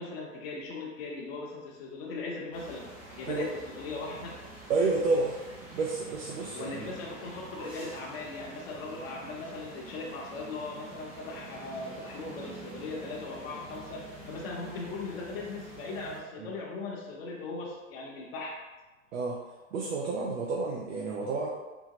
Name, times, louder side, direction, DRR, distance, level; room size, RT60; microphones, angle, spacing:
voice 1, 0.0-2.9 3.2-4.4 6.5-18.6, left 3 dB, 50° left, -4 dB, 0.7 m, -39 dB
sound 1, 2.5-16.2, right 1 dB, 5° right, 0.4 m, -47 dB
voice 2, 4.7-5.3 5.7-6.9 16.4-16.5 19.1-19.4 19.7-21.5, right 3 dB, 65° right, -2 dB, 0.6 m, -30 dB
3.7 x 2.0 x 2.9 m, 1.2 s
hypercardioid pair, 120°, 40 cm